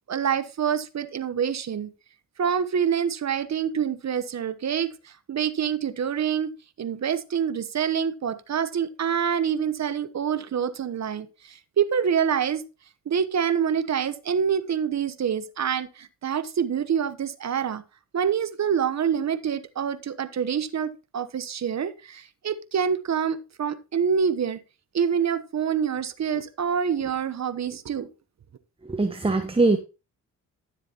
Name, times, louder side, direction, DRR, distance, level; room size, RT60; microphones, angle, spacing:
voice 1, 0.1-1.9 2.4-6.5 6.8-12.6 13.1-17.8 18.1-24.6 24.9-28.1, right 7 dB, 45° right, 1.0 m, -26 dB
voice 2, 28.9-29.8, right 3 dB, 15° right, 1.0 m, -21 dB
12.5 x 7.4 x 2.9 m
hypercardioid pair, 50°, 38 cm